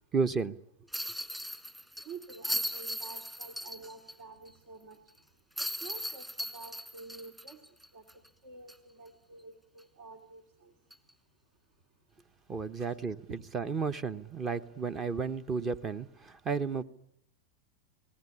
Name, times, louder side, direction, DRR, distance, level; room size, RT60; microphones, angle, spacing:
voice 1, 0.1-0.6 12.5-16.8, right 5 dB, 25° right, 1.0 m, -33 dB
sound 1, 0.9-4.1 4.5-4.6 5.6-8.3 8.7-8.8 10.9-11.1, equal, 5° right, 1.8 m, -38 dB
voice 2, 2.0-5.0 5.8-7.6 7.9-8.0 8.4-10.7 12.8-12.9 13.3-13.4, right 3 dB, 60° right, 3.1 m, -48 dB
26.0 x 19.0 x 9.8 m
hypercardioid pair, 120°, 0 cm